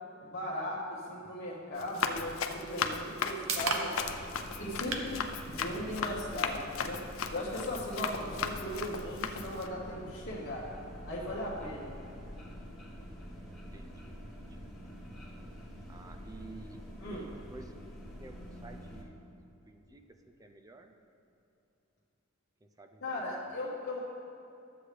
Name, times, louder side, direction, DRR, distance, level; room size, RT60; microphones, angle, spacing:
voice 1, 0.2-4.0 4.6-7.0 7.3-10.7 11.0-11.9 17.0-17.3 23.0-24.0, left 1 dB, 50° left, -6 dB, 1.2 m, -38 dB
Run, 1.8-9.7, left 6 dB, 80° left, 0.5 m, -37 dB
sound 1, 2.7-16.6, right 4 dB, 85° right, 0.8 m, -45 dB
sound 2, 4.0-19.0, equal, ahead, 1.4 m, -47 dB
voice 2, 11.6-11.9 13.7-14.6 15.9-17.7 18.2-19.2 19.7-21.0 22.6-23.6, right 2 dB, 15° right, 5 dB, 0.4 m, -53 dB
12.5 x 7.7 x 3.3 m, 2.9 s
head